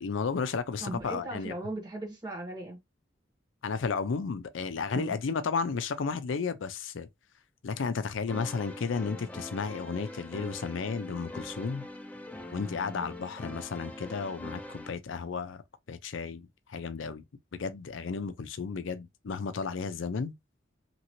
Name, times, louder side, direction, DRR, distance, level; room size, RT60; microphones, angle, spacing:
voice 1, 0.0-1.5 3.6-7.1 7.6-11.8 12.5-15.6 15.9-17.2 17.5-20.3, left 5 dB, 75° left, 0.5 m, -33 dB
voice 2, 0.8-2.8 4.9-5.1, right 2 dB, 20° right, 1.4 m, -38 dB
sound 1, 8.3-14.9, left 1 dB, 10° left, 0.3 m, -43 dB
2.9 x 2.7 x 2.9 m
head